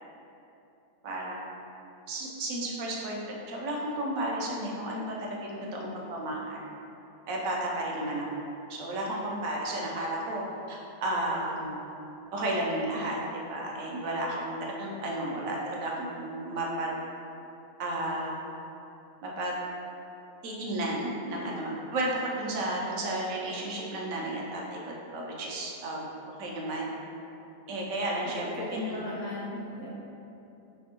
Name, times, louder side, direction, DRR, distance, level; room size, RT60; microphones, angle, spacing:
voice 1, 1.0-1.4 2.1-6.6 7.3-8.3 8.7-11.8 12.3-16.9 17.8-18.3 19.2-19.6 20.4-26.9 27.7-28.5 28.9-29.0, right 1 dB, 75° right, -2 dB, 1.0 m, -33 dB
voice 2, 5.6-6.0 20.7-21.0 21.4-21.6 28.2-29.9, left 2 dB, 60° left, -5 dB, 0.7 m, -38 dB
4.3 x 3.3 x 2.9 m, 2.9 s
omnidirectional pair, 1.5 m